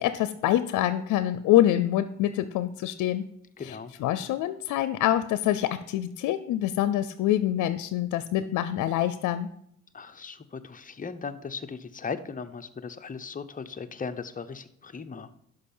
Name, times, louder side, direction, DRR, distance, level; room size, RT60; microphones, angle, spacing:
voice 1, 0.0-3.3 3.6-9.5, left 12 dB, 85° left, 13 dB, 0.6 m, -25 dB
voice 2, 3.6-3.9 9.9-15.3, left 5 dB, 25° left, 9 dB, 0.8 m, -37 dB
11.0 x 5.7 x 5.5 m, 0.72 s
cardioid pair, 90°, 30 cm